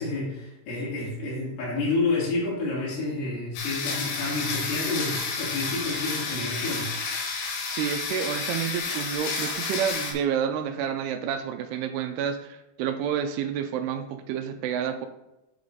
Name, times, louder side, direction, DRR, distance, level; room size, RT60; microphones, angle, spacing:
voice 1, 0.0-7.0, left 3 dB, 40° left, -7 dB, 3.2 m, -29 dB
sound 1, 3.6-10.1, left 4 dB, 80° left, 3.5 m, -31 dB
voice 2, 7.6-15.1, right 8 dB, 80° right, 7 dB, 2.5 m, -29 dB
8.4 x 4.8 x 4.0 m, 0.92 s
omnidirectional pair, 4.8 m